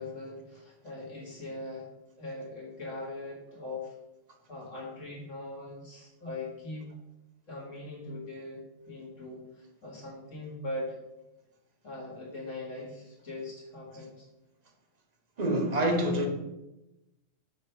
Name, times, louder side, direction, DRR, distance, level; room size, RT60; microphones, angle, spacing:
voice 1, 0.0-1.9 2.2-3.9 4.5-6.9 7.5-11.0 11.8-14.3, left 2 dB, 70° left, 2.3 m, -41 dB
voice 2, 15.4-16.3, right 1 dB, 35° right, 0.9 m, -26 dB
6.4 x 3.3 x 5.6 m
omnidirectional pair, 1.3 m